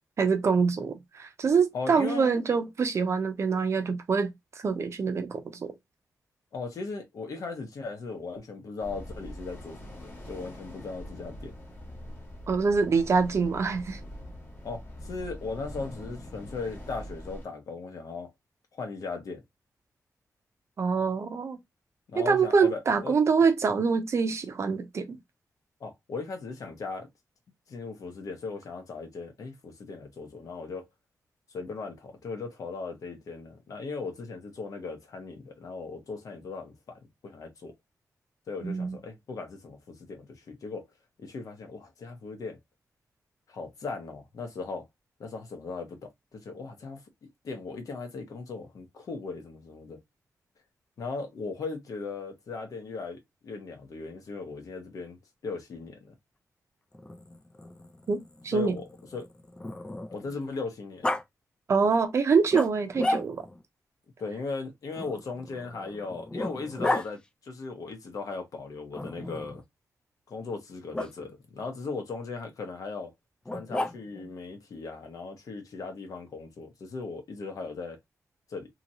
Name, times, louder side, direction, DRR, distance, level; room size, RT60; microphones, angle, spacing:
voice 1, 0.2-5.7 12.5-14.0 20.8-21.6 22.2-25.2 38.6-39.0 58.1-58.8 61.7-63.5, right 5 dB, 50° right, 0.6 m, -25 dB
voice 2, 1.7-2.4 6.5-11.5 14.6-18.3 18.7-19.4 22.1-23.1 25.8-27.1 27.7-30.9 31.5-37.7 38.5-40.9 41.2-42.6 43.5-44.9 45.2-47.0 47.4-50.0 51.0-55.2 55.4-56.1 58.5-59.3 60.1-61.1 64.2-69.6 70.3-73.1 73.5-78.0 78.5-78.7, left 4 dB, 65° left, 0.9 m, -38 dB
sound 1, 8.8-17.4, equal, 30° left, 1.2 m, -43 dB
Growling, 56.9-60.3 61.0-61.2 62.5-63.6 65.0-67.1 68.9-69.6 70.9-71.1 73.4-74.3, left 1 dB, 15° left, 0.3 m, -34 dB
2.9 x 2.8 x 2.6 m
wide cardioid pair, 160°, 6 cm